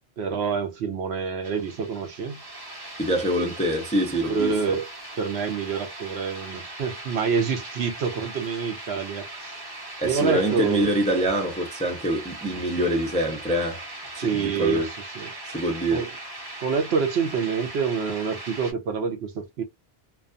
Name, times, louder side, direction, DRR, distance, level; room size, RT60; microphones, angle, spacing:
voice 1, 0.2-2.4 4.3-4.9 5.2-9.5 10.0-10.9 14.2-14.9 15.2-15.3 15.9-16.1 16.6-19.6, right 5 dB, 70° right, 0.9 m, -27 dB
sound 1, 1.4-18.7, right 1 dB, 25° right, 0.8 m, -39 dB
voice 2, 3.0-4.5 10.0-13.8 14.1-14.9 15.5-16.0, right 1 dB, 10° left, 0.4 m, -25 dB
2.3 x 2.3 x 2.5 m
omnidirectional pair, 1.2 m